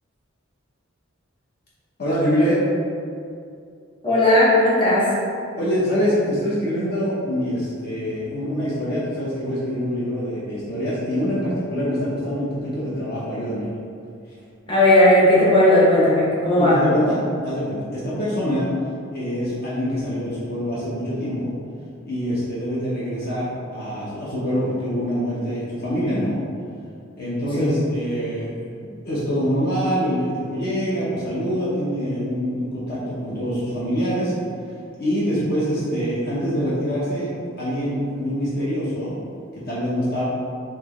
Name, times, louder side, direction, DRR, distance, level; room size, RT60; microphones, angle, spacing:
voice 1, 2.0-2.6 5.5-13.7 16.6-18.7 19.1-21.6 22.0-23.5 23.7-26.4 27.2-34.3 35.0-37.3 37.6-39.2 39.5-40.2, equal, 50° left, -8 dB, 0.8 m, -25 dB
voice 2, 4.0-5.1 14.7-16.8 27.6-27.7, left 1 dB, 25° left, -8 dB, 1.0 m, -16 dB
4.5 x 2.9 x 3.0 m, 2.4 s
head